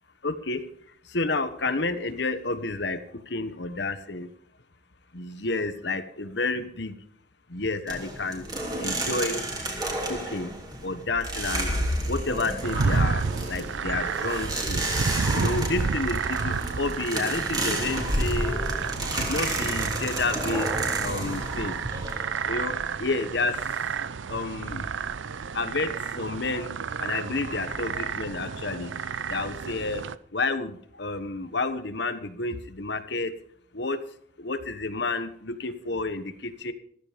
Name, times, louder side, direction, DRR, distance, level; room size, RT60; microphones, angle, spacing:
voice 1, 0.2-0.6 1.0-4.3 5.1-7.0 7.5-8.5 8.8-9.4 10.0-10.5 10.8-11.7 12.1-18.6 19.0-20.7 21.0-21.7 22.4-23.6 24.3-24.9 25.5-26.7 27.0-28.9 29.3-30.0 30.3-33.3 33.7-34.0 34.4-36.7, left 3 dB, 60° left, 10 dB, 1.2 m, -30 dB
sound 1, 7.9-22.9, right 1 dB, 20° right, 3.1 m, -31 dB
sound 2, 12.6-30.2, right 5 dB, 75° right, 0.6 m, -30 dB
14.5 x 13.5 x 5.2 m, 0.65 s
head